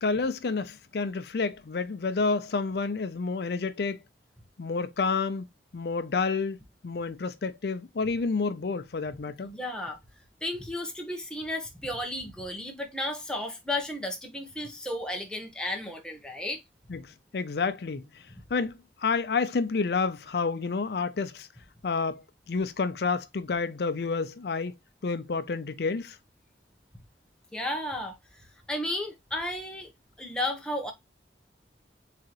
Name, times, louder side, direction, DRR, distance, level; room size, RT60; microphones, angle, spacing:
voice 1, 0.0-4.0 4.6-5.5 5.7-6.6 6.8-9.5 16.9-21.5 21.8-24.7 25.0-26.2, left 4 dB, 65° left, 0.5 m, -29 dB
voice 2, 9.4-10.0 10.4-16.6 27.5-29.9 30.2-30.9, left 1 dB, 5° left, 1.0 m, -33 dB
4.8 x 3.8 x 2.9 m
head